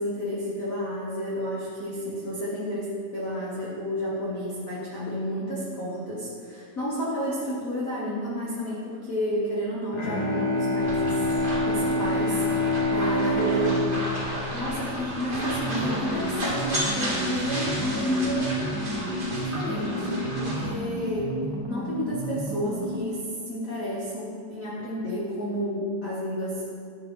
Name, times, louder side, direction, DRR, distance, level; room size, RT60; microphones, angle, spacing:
voice 1, 0.0-11.2 11.6-18.5 19.3-26.7, equal, 80° left, -7 dB, 0.7 m, -31 dB
Bowed string instrument, 9.9-15.6, left 1 dB, 50° left, 1.5 m, -26 dB
sound 1, 10.8-20.7, right 1 dB, 40° right, 0.7 m, -33 dB
sound 2, 15.6-23.2, equal, 55° right, 1.5 m, -32 dB
11.0 x 5.1 x 3.1 m, 2.3 s
omnidirectional pair, 3.3 m